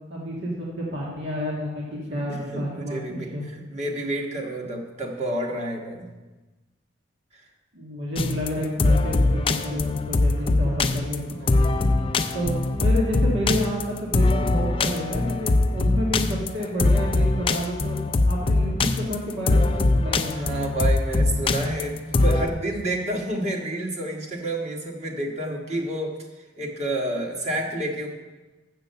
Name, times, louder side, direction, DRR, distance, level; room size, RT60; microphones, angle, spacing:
voice 1, 0.1-3.4 7.7-11.6 12.3-18.0 18.3-20.5, equal, 75° right, -4 dB, 1.9 m, -30 dB
voice 2, 1.9-3.3 3.6-6.1 7.3-7.4 20.3-26.1 26.6-28.1, right 1 dB, 40° right, 0 dB, 1.5 m, -29 dB
sound 1, 8.2-22.5, left 2 dB, 30° left, 0.4 m, -22 dB
7.4 x 6.8 x 6.7 m, 1.2 s
head